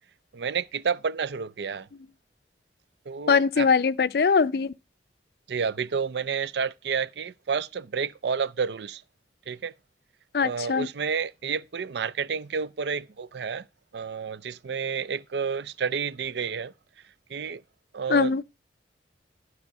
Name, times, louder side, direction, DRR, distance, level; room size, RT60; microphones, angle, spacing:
voice 1, 0.3-1.9 3.1-3.7 5.5-9.0 9.5-9.7 10.4-13.7 13.9-16.7 17.3-17.6 17.9-18.4, right 6 dB, 75° right, 0.5 m, -30 dB
voice 2, 3.3-4.7 10.3-10.9 18.1-18.4, left 5 dB, 60° left, 0.4 m, -22 dB
12.0 x 4.8 x 5.4 m
head